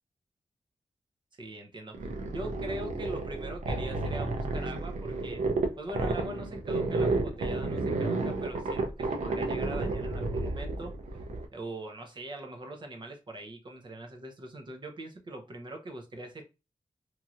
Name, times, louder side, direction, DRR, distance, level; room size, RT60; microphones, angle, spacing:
voice 1, 1.4-5.4 5.8-10.9 11.5-16.4, right 1 dB, 40° right, 0.7 m, -42 dB
sound 1, 1.9-11.5, right 3 dB, 85° right, 0.6 m, -31 dB
3.0 x 2.7 x 2.4 m
wide cardioid pair, 115°, 12 cm